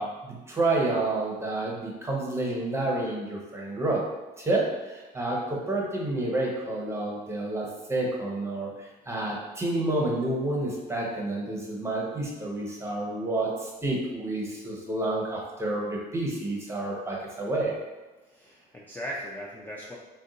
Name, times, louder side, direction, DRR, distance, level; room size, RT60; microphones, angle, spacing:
voice 1, 0.0-4.0 4.4-17.7, right 2 dB, 15° right, -2 dB, 0.7 m, -29 dB
voice 2, 18.3-19.9, equal, 10° left, -4 dB, 0.3 m, -38 dB
2.6 x 2.2 x 3.7 m, 1.2 s
cardioid pair, 110°, 17 cm